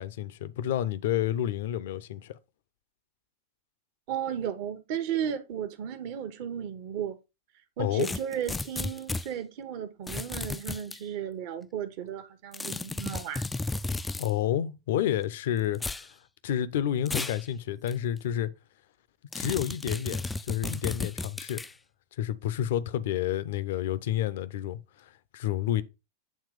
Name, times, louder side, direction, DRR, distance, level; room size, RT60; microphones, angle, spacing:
voice 1, 0.0-2.4 7.8-8.1 14.1-16.1 16.4-18.5 19.3-21.7 22.2-25.8, left 11 dB, 55° left, 0.6 m, -30 dB
voice 2, 4.1-7.2 7.8-13.5, right 9 dB, 45° right, 0.9 m, -34 dB
sound 1, 8.0-9.3 10.1-11.0 12.5-14.3 15.7-16.1 17.1-17.4 17.9-18.0 19.3-21.7, left 3 dB, 10° left, 0.3 m, -34 dB
8.6 x 3.0 x 5.0 m
figure-of-eight pair, 90°, 0 cm